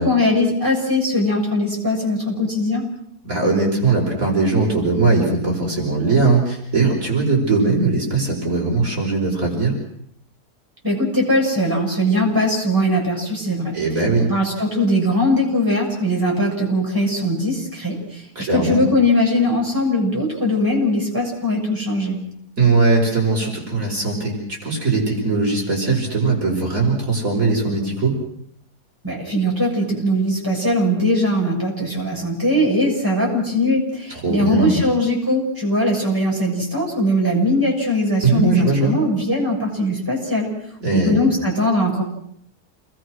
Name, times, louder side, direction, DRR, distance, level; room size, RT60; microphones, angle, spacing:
voice 1, 0.0-2.9 10.8-13.8 14.2-22.2 29.0-40.5 40.9-42.0, left 1 dB, 10° right, -2 dB, 6.9 m, -20 dB
voice 2, 3.2-9.7 13.7-14.3 18.4-18.8 22.6-28.1 34.1-34.8 38.2-39.0 40.8-41.2, right 3 dB, 55° right, -2 dB, 5.5 m, -19 dB
29.0 x 21.0 x 6.3 m, 0.69 s
omnidirectional pair, 1.7 m